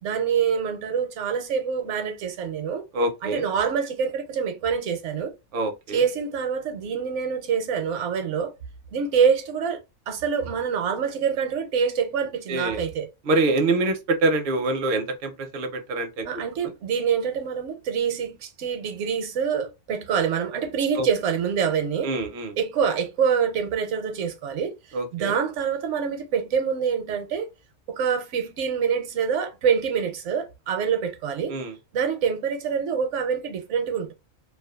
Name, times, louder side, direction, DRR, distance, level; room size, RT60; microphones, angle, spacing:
voice 1, 0.0-2.8 3.2-5.3 5.9-8.5 8.9-9.8 10.1-13.1 16.3-22.1 22.6-24.7 25.1-27.5 27.9-31.5 31.9-34.1, right 7 dB, 75° right, 0.9 m, -25 dB
voice 2, 2.9-3.4 5.5-6.0 12.5-12.8 13.3-16.3 21.0-21.1 22.0-22.5 24.9-25.3 31.5-31.7, right 2 dB, 60° right, 0.6 m, -25 dB
2.5 x 2.3 x 2.3 m
omnidirectional pair, 1.3 m